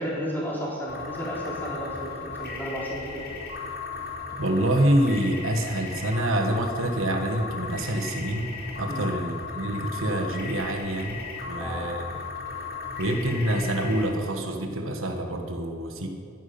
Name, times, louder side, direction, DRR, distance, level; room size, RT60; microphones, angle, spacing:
voice 1, 0.0-3.3 8.9-9.2 11.6-11.9, equal, 10° left, -5 dB, 4.0 m, -33 dB
sound 1, 0.9-14.0, left 5 dB, 50° left, 4.5 m, -37 dB
voice 2, 4.4-12.1 13.0-16.1, right 1 dB, 70° right, 4 dB, 1.5 m, -26 dB
11.0 x 10.5 x 9.6 m, 2.4 s
head